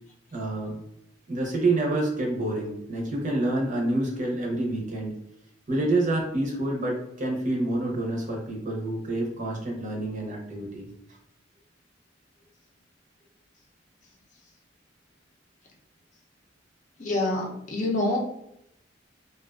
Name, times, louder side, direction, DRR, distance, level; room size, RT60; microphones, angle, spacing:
voice 1, 0.3-0.8 1.3-5.1 5.7-10.9, right 2 dB, 45° right, -2 dB, 0.6 m, -28 dB
voice 2, 17.0-18.2, left 2 dB, 40° left, -2 dB, 0.6 m, -26 dB
2.4 x 2.3 x 2.3 m, 0.77 s
head